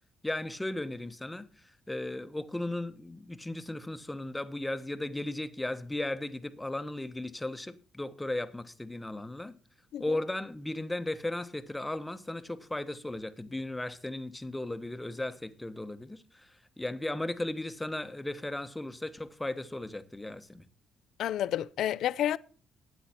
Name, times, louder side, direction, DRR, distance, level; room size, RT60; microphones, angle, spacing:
voice 1, 0.2-9.5 10.0-20.7, left 1 dB, 10° left, 1.1 m, -36 dB
voice 2, 21.2-22.4, left 11 dB, 80° left, 0.5 m, -29 dB
13.0 x 9.1 x 4.4 m
cardioid pair, 90°, 0 cm